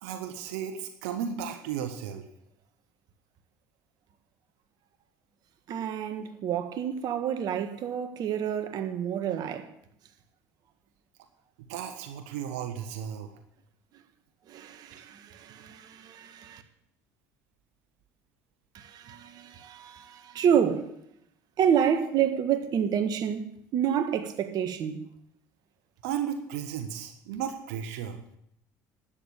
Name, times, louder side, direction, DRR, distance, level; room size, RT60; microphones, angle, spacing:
voice 1, 0.0-2.3 11.7-13.3 15.0-15.1 26.0-28.2, right 8 dB, 85° right, 1.4 m, -34 dB
voice 2, 5.7-9.7 14.5-16.6 18.7-20.9 21.6-25.1, right 8 dB, 60° right, 1.6 m, -28 dB
12.5 x 8.7 x 8.9 m
supercardioid pair, 75°, 8 cm